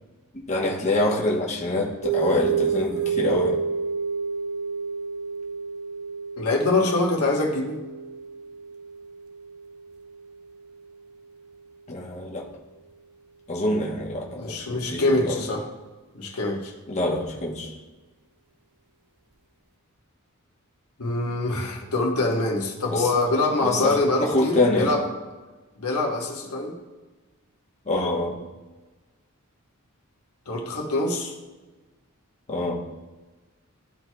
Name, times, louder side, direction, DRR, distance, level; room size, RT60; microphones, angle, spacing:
voice 1, 0.3-3.6 11.9-12.5 13.5-15.5 16.9-17.7 22.9-23.2 23.6-24.9 27.9-28.4 32.5-32.8, left 2 dB, 30° left, -2 dB, 1.1 m, -26 dB
sound 1, 2.0-11.0, right 6 dB, 75° right, 0.7 m, -30 dB
voice 2, 6.4-7.8 14.4-15.6 16.1-16.7 21.0-25.0 25.8-26.7 30.5-31.3, left 2 dB, 85° left, -1 dB, 1.3 m, -24 dB
13.0 x 4.5 x 2.3 m, 1.2 s
head